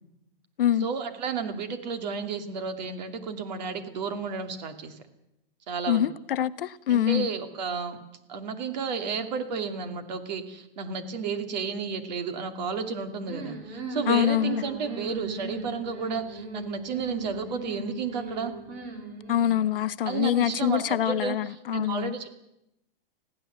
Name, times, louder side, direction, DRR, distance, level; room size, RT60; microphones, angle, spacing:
voice 1, 0.8-5.0 5.7-6.1 6.9-8.0 8.3-18.5 20.0-22.4, right 5 dB, 45° right, 2.6 m, -32 dB
voice 2, 5.9-7.3 14.1-14.6 19.3-22.1, left 11 dB, 70° left, 0.9 m, -25 dB
sound 1, 13.2-19.6, right 3 dB, 25° right, 3.5 m, -38 dB
21.0 x 15.5 x 8.0 m
supercardioid pair, 175°, 29 cm